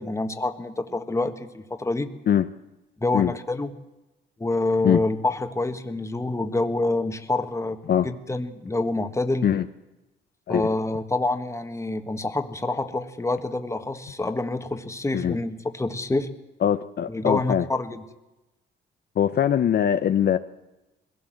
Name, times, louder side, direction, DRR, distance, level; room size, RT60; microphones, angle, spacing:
voice 1, 0.0-2.1 3.0-3.7 4.4-9.5 10.5-16.3 17.1-18.0, left 2 dB, 15° left, 8 dB, 1.6 m, -27 dB
voice 2, 16.6-17.6 19.2-20.4, left 9 dB, 55° left, 9 dB, 0.8 m, -22 dB
21.5 x 16.0 x 7.8 m, 1.0 s
cardioid pair, 90°, 20 cm